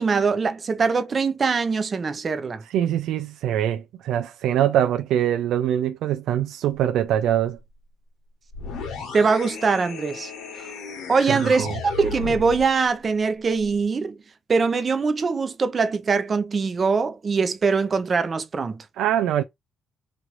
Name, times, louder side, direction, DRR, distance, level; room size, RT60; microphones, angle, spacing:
voice 1, 0.0-2.6 9.1-10.3 11.1-14.2 14.5-18.8, right 4 dB, 40° right, 0.7 m, -22 dB
voice 2, 2.7-7.6 11.3-11.8 19.0-19.4, right 11 dB, 85° right, 0.4 m, -23 dB
sound 1, 8.5-12.7, left 4 dB, 85° left, 1.1 m, -34 dB
3.1 x 2.5 x 3.0 m
cardioid pair, 90°, 0 cm